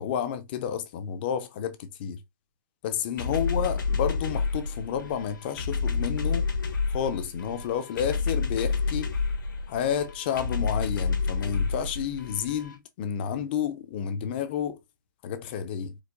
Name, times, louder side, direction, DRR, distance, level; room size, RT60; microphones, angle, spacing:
voice 1, 0.0-2.2 2.8-6.5 6.9-9.1 9.7-14.8 15.2-16.0, left 8 dB, 30° left, 0.5 m, -30 dB
sound 1, 3.2-12.7, left 4 dB, 75° left, 1.1 m, -29 dB
4.6 x 2.2 x 2.4 m
hypercardioid pair, 160°, 11 cm